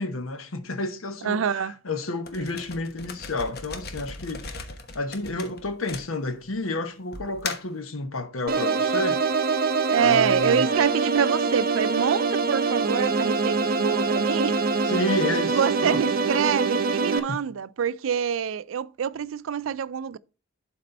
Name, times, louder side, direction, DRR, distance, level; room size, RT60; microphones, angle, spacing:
voice 1, 0.0-4.7 4.9-9.3 10.0-10.7 14.9-16.0 17.1-17.4, left 2 dB, 85° left, 1.1 m, -31 dB
voice 2, 1.2-1.7 9.9-14.6 15.5-20.2, right 7 dB, 70° right, 0.4 m, -26 dB
sound 1, 2.3-6.6 7.1-7.8, left 4 dB, 50° left, 1.1 m, -38 dB
sound 2, 8.5-17.2, right 4 dB, 45° right, 0.8 m, -24 dB
11.5 x 4.3 x 4.2 m
head